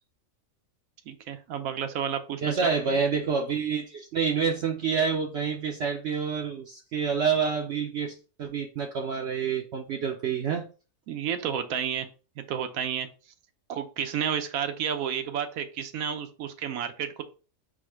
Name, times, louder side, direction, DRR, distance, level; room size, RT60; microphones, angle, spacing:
voice 1, 1.1-2.7 11.1-12.1 12.4-13.1 13.7-17.2, right 8 dB, 85° right, 8 dB, 1.1 m, -31 dB
voice 2, 2.4-10.6, right 6 dB, 65° right, 2 dB, 0.8 m, -28 dB
4.7 x 2.2 x 4.5 m, 0.34 s
omnidirectional pair, 1.4 m